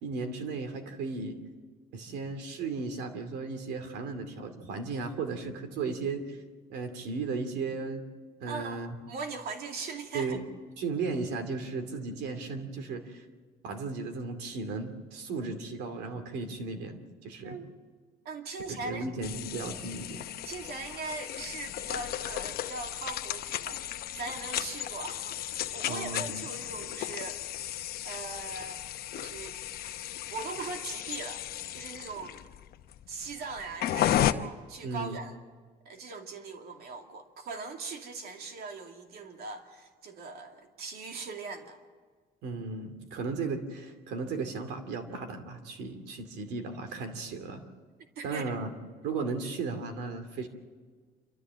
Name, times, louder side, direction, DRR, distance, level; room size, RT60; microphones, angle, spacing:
voice 1, 0.0-1.4 1.9-6.4 6.7-8.0 8.4-8.9 10.1-10.4 10.8-13.2 13.6-17.6 18.7-20.3 25.9-26.5 34.8-35.2 42.4-47.6 48.2-48.7 49.0-50.5, right 4 dB, 85° right, 8 dB, 2.5 m, -35 dB
voice 2, 8.5-8.8 9.1-10.4 17.4-17.7 18.2-19.1 20.4-27.4 28.0-28.9 29.1-29.6 29.9-30.0 30.3-31.4 31.7-32.4 33.1-35.4 35.8-41.8 48.2-48.5, right 3 dB, 65° right, 4 dB, 2.5 m, -40 dB
sound 1, 19.2-34.3, left 12 dB, 65° left, 0.9 m, -34 dB
27.5 x 13.5 x 7.6 m, 1.5 s
cardioid pair, 110°, 17 cm